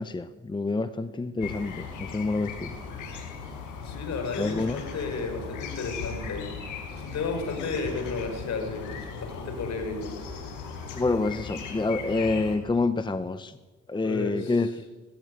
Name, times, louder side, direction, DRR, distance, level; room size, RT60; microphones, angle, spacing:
voice 1, 0.0-2.7 4.4-4.8 10.9-13.5 13.9-14.7, left 3 dB, 15° left, 12 dB, 0.8 m, -27 dB
sound 1, 1.4-12.6, left 5 dB, 85° left, 5.1 m, -38 dB
voice 2, 3.8-10.1 14.0-14.6, left 4 dB, 60° left, 6 dB, 5.1 m, -33 dB
19.5 x 16.0 x 9.4 m, 1.3 s
cardioid pair, 90°, 30 cm